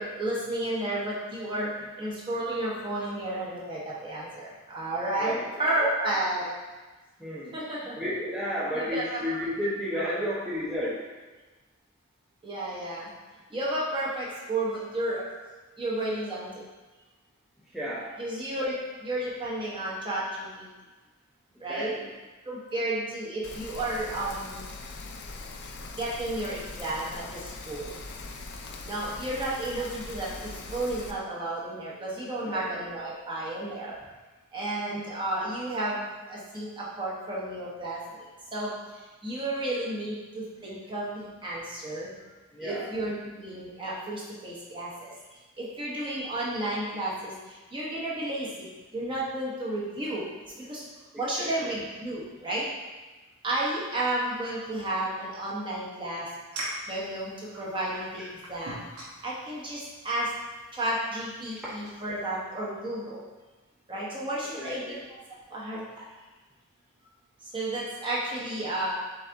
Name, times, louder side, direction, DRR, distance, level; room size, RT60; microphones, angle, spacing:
voice 1, 0.0-1.7 2.0-6.5 7.5-8.0 8.7-9.4 9.9-10.2 12.4-13.1 13.5-15.2 15.8-16.6 18.2-18.7 19.0-20.7 21.6-21.9 22.5-24.6 26.0-28.0 28.8-34.0 34.5-38.7 39.2-42.1 42.6-45.1 45.6-48.7 48.9-50.2 50.6-50.8 51.2-52.7 53.4-56.3 56.9-58.9 59.2-60.3 60.7-63.2 63.9-65.0 65.5-66.0 67.4-68.9, right 1 dB, 25° right, -6 dB, 1.0 m, -32 dB
voice 2, 7.2-7.6 8.0-11.0 17.7-18.1 21.7-22.1 32.5-32.9 34.9-35.0 42.5-42.9 51.1-51.8 61.6-61.7 64.6-65.0, equal, ahead, -10 dB, 0.6 m, -32 dB
Rain, 23.4-31.1, left 3 dB, 50° left, 0.4 m, -41 dB
sound 1, 56.5-62.4, right 1 dB, 90° right, 1.0 m, -43 dB
4.0 x 3.4 x 3.8 m, 1.2 s
head